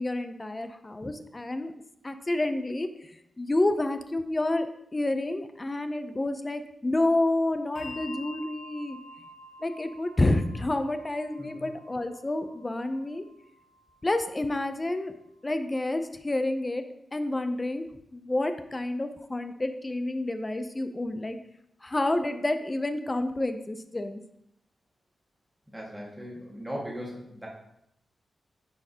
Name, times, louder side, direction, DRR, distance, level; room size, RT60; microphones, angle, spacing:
voice 1, 0.0-1.7 2.0-3.1 3.4-9.0 9.6-13.2 14.0-15.1 15.4-16.8 17.1-17.8 18.1-21.4 21.8-24.2, left 2 dB, 20° left, 9 dB, 0.5 m, -29 dB
Bell, 7.8-14.6, left 1 dB, 55° left, 1.3 m, -48 dB
voice 2, 11.4-11.7 25.7-27.5, equal, 5° right, -4 dB, 1.6 m, -38 dB
9.6 x 4.4 x 2.8 m, 0.77 s
wide cardioid pair, 130°, 0 cm